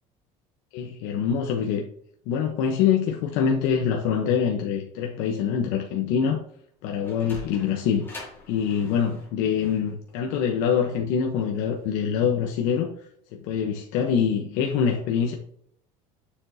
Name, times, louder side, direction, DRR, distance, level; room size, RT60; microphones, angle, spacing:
voice 1, 0.7-1.8 2.3-6.4 6.8-8.0 8.5-12.9 13.3-15.3, left 7 dB, 70° left, 1.0 m, -24 dB
Sliding door, 6.7-11.9, left 1 dB, 15° left, 2.5 m, -45 dB
7.1 x 7.0 x 2.8 m
cardioid pair, 160°, 15 cm